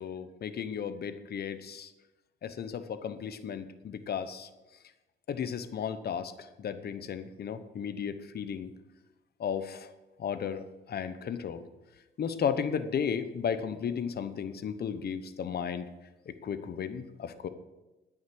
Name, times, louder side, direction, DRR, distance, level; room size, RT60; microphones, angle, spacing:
voice 1, 0.0-1.9 2.4-4.5 5.3-6.3 6.6-8.7 9.4-9.9 10.2-11.6 12.2-15.9 16.3-17.5, left 7 dB, 55° left, 11 dB, 1.0 m, -34 dB
9.8 x 8.6 x 6.3 m, 1.0 s
cardioid pair, 90°, 20 cm